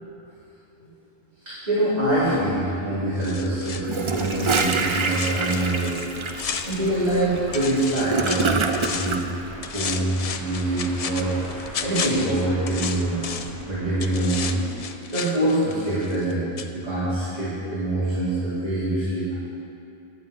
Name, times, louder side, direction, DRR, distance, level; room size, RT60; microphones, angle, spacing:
voice 1, 1.4-6.0 6.7-9.2 9.7-11.4 11.8-13.2 13.6-14.6 15.1-16.4 16.7-19.3, right 1 dB, 35° right, -12 dB, 2.2 m, -24 dB
sound 1, 2.0-14.6, equal, 35° left, 2.5 m, -42 dB
sound 2, 3.2-7.3 7.5-9.3 9.6-13.6 14.0-16.3 16.6-16.7, left 6 dB, 75° left, 0.3 m, -33 dB
Gurgling / Toilet flush, 3.8-9.2, right 4 dB, 50° right, 0.3 m, -26 dB
10.0 x 8.8 x 4.5 m, 2.7 s
omnidirectional pair, 1.2 m